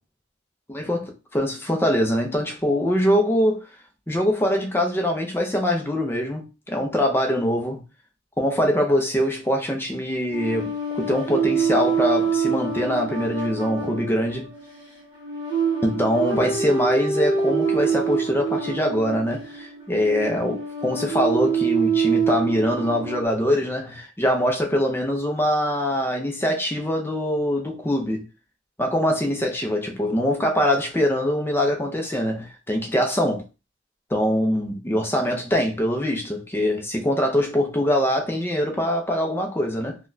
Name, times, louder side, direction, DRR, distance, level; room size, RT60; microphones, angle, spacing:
voice 1, 0.7-3.6 4.1-7.8 8.4-14.5 15.8-28.2 28.8-33.4 34.1-40.0, equal, 10° left, 0.5 m, -23 dB
sound 1, 10.3-23.3, right 5 dB, 25° right, 1.2 m, -26 dB
3.9 x 2.3 x 2.6 m
head